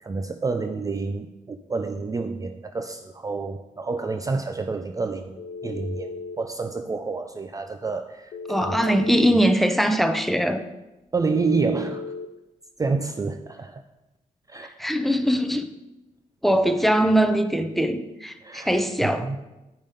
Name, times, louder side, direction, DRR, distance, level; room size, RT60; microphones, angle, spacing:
voice 1, 0.0-9.4 11.1-12.0 12.8-13.8 14.5-14.7 18.4-19.4, right 4 dB, 25° right, 8 dB, 0.5 m, -29 dB
Telephone, 5.4-6.4 8.3-9.3 11.3-12.3, left 4 dB, 75° left, 0.7 m, -35 dB
voice 2, 8.5-10.6 14.8-15.7 16.4-19.3, equal, ahead, 8 dB, 0.8 m, -21 dB
9.2 x 5.2 x 5.1 m, 1.0 s
cardioid pair, 75°, 14 cm